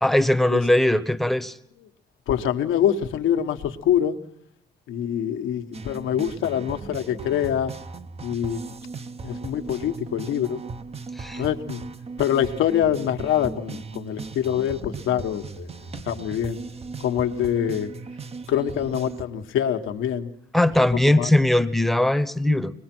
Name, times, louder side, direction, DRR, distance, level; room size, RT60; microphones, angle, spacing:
voice 1, 0.0-1.5 11.2-11.4 20.5-22.7, left 1 dB, ahead, 13 dB, 1.0 m, -20 dB
voice 2, 2.3-4.2 4.9-7.7 8.2-8.6 9.2-10.6 11.3-11.8 12.2-15.7 16.1-16.6 17.0-17.9 18.5-20.3 21.1-21.3, left 10 dB, 85° left, 6 dB, 1.3 m, -25 dB
sound 1, 5.7-19.2, right 4 dB, 30° right, 0.8 m, -37 dB
24.0 x 20.5 x 6.1 m, 0.75 s
cardioid pair, 90°, 20 cm